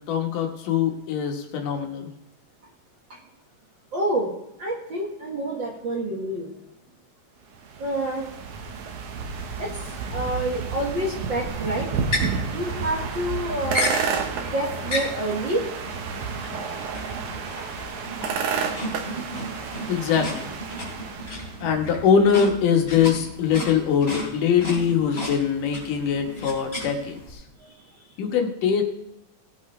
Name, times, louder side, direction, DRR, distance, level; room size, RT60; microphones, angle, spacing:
voice 1, 0.1-2.1 19.9-20.5 21.6-27.4 28.2-28.8, left 7 dB, 75° left, 3 dB, 2.9 m, -22 dB
voice 2, 3.9-4.3 4.6-6.5 7.8-8.2 9.6-9.7 10.1-11.9 12.5-14.0 14.3-15.6, right 1 dB, 45° right, -1 dB, 1.6 m, -28 dB
sound 1, 7.6-21.6, right 6 dB, 70° right, 2.5 m, -31 dB
sound 2, 11.5-27.3, left 1 dB, 20° left, 3.3 m, -34 dB
18.0 x 8.5 x 3.2 m, 0.87 s
omnidirectional pair, 3.8 m